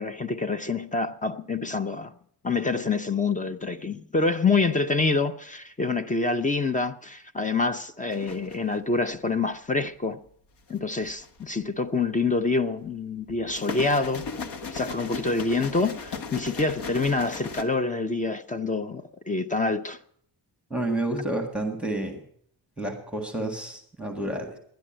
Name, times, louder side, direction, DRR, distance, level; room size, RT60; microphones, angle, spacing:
voice 1, 0.0-2.1 2.4-10.2 10.7-14.3 14.7-20.0, left 3 dB, 20° left, 0.5 m, -26 dB
sound 1, 8.1-8.8 10.7-11.4 13.3-17.6, left 4 dB, 75° left, 1.6 m, -36 dB
voice 2, 20.7-22.2 22.8-24.6, right 1 dB, 5° right, 1.6 m, -30 dB
12.0 x 10.5 x 8.8 m
wide cardioid pair, 170°, 41 cm